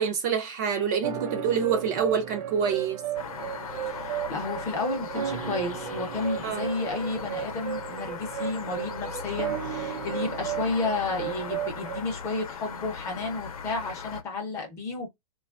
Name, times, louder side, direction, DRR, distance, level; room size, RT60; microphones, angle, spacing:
voice 1, 0.0-3.0 6.4-6.6, right 7 dB, 30° right, 0.4 m, -26 dB
sound 1, 1.0-12.0, right 11 dB, 80° right, 0.6 m, -34 dB
sound 2, 3.1-14.2, left 6 dB, 75° left, 0.7 m, -38 dB
voice 2, 3.9-15.1, left 3 dB, 15° left, 0.6 m, -32 dB
3.1 x 2.3 x 2.4 m
hypercardioid pair, 160°, 18 cm